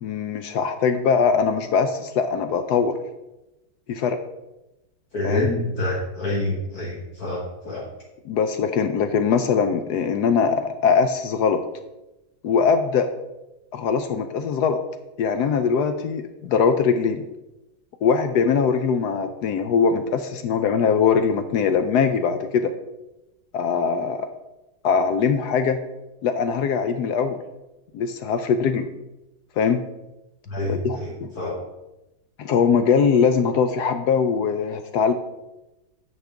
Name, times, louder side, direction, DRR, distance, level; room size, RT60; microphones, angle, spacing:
voice 1, 0.0-3.0 3.9-4.2 5.2-5.5 8.3-11.6 12.4-13.1 13.7-14.8 15.2-17.2 18.0-22.7 23.5-24.3 24.8-25.8 26.2-27.4 27.9-28.9 29.6-29.8 30.7-31.3 32.4-35.1, left 6 dB, 75° left, 9 dB, 1.0 m, -21 dB
voice 2, 5.1-7.8 30.5-31.6, left 1 dB, 55° left, -3 dB, 1.7 m, -27 dB
9.5 x 6.6 x 3.5 m, 0.97 s
omnidirectional pair, 2.1 m